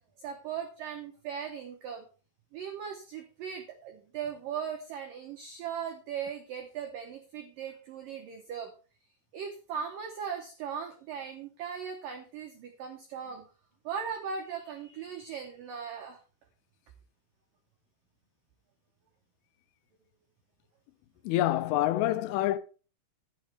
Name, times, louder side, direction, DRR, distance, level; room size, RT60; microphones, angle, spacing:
voice 1, 0.2-2.1 2.5-8.7 9.3-13.5 13.8-16.2, right 7 dB, 85° right, 1.9 m, -38 dB
voice 2, 21.2-22.6, left 14 dB, 85° left, 3.2 m, -26 dB
12.0 x 9.3 x 3.4 m
omnidirectional pair, 5.7 m